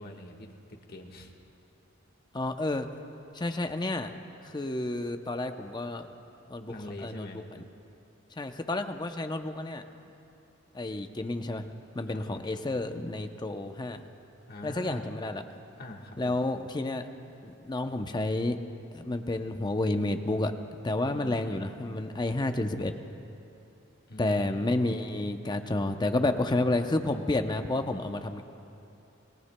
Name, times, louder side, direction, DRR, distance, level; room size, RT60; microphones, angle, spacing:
voice 1, 0.0-1.3 6.7-7.4 10.0-10.1 12.1-12.5 14.5-15.1 15.8-16.4 21.1-21.7 24.1-24.8, left 1 dB, 50° left, 1 dB, 1.4 m, -43 dB
voice 2, 2.3-2.9 3.3-4.1 4.5-6.1 6.5-6.7 7.0-7.4 8.4-9.8 10.7-11.7 11.9-14.0 14.6-15.4 16.2-17.1 17.4-18.6 18.9-20.5 20.8-22.9 24.2-28.4, left 2 dB, 20° left, 7 dB, 0.6 m, -30 dB
28.5 x 18.0 x 2.2 m, 2.8 s
head